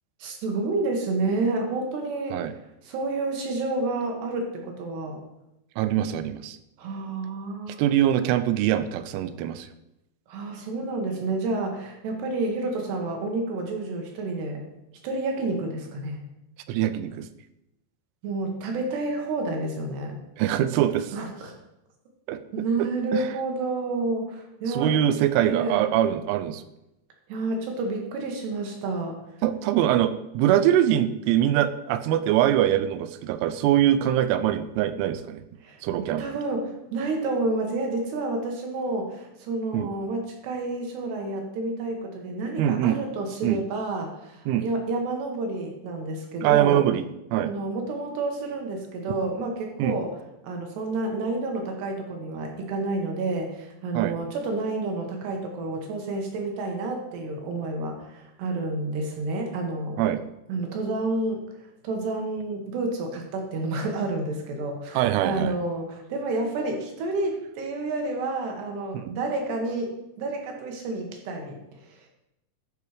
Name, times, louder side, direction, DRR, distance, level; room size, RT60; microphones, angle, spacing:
voice 1, 0.2-2.4 2.8-5.2 6.8-7.8 10.3-14.6 15.0-16.2 18.2-20.2 21.1-21.5 22.5-25.0 25.5-25.8 27.3-29.2 35.6-46.8 47.4-50.1 50.4-60.0 60.5-61.4 61.8-71.6 71.9-72.0, right 2 dB, 70° right, 2 dB, 3.0 m, -29 dB
voice 2, 5.8-6.6 7.8-9.7 16.7-17.3 20.4-21.1 22.3-22.4 22.8-23.3 24.7-26.6 29.4-35.4 35.8-36.3 39.7-39.9 42.6-43.0 43.4-43.6 44.5-44.7 46.4-47.0 47.3-47.5 49.8-50.0 53.9-54.1 60.0-60.2 65.0-65.6 68.9-69.1, right 11 dB, 85° right, 12 dB, 3.1 m, -23 dB
12.0 x 5.0 x 4.8 m, 0.87 s
omnidirectional pair, 5.5 m